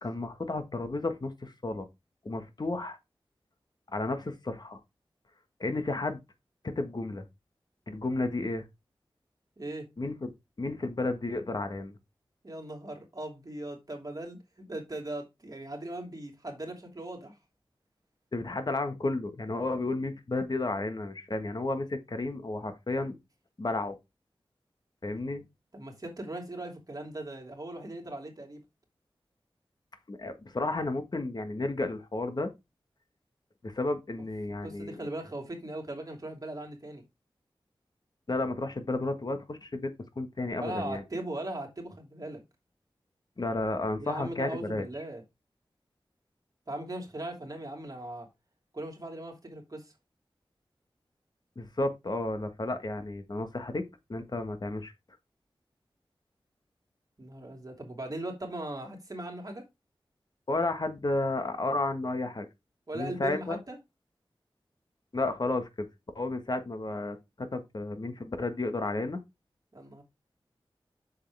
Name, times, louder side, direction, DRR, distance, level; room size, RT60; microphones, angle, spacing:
voice 1, 0.0-1.8 2.2-3.0 3.9-4.8 5.6-6.2 6.6-7.2 7.9-8.7 10.0-10.3 10.6-11.9 18.3-23.1 23.6-24.0 25.0-25.5 30.1-32.5 33.6-35.0 38.3-41.0 43.4-44.9 51.5-53.8 54.1-54.9 60.5-62.5 62.9-63.6 65.1-65.9 66.1-69.2, left 2 dB, 50° left, 1.5 m, -32 dB
voice 2, 9.6-9.9 12.4-17.4 25.7-28.6 34.6-37.0 40.6-42.4 44.0-45.2 46.7-48.3 48.7-49.9 57.2-59.6 62.9-63.8 69.7-70.0, right 1 dB, 40° right, 2.8 m, -39 dB
7.5 x 6.6 x 3.5 m
wide cardioid pair, 80°, 9 cm